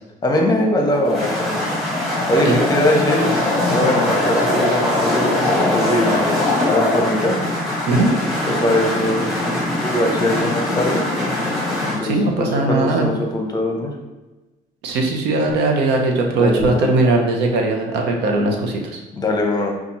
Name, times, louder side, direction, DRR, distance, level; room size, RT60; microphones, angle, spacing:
voice 1, 0.2-3.3 3.7-6.3 6.6-7.4 8.6-9.3 9.8-11.0 11.8-12.1 12.4-13.9 16.3-16.9 19.1-19.7, left 1 dB, 25° left, 1 dB, 0.8 m, -21 dB
sound 1, 0.9-12.0, left 1 dB, ahead, 1.4 m, -21 dB
voice 2, 12.0-13.1 14.8-19.0, right 2 dB, 85° right, 2 dB, 0.7 m, -19 dB
5.2 x 2.4 x 2.9 m, 1.1 s
cardioid pair, 110°, 17 cm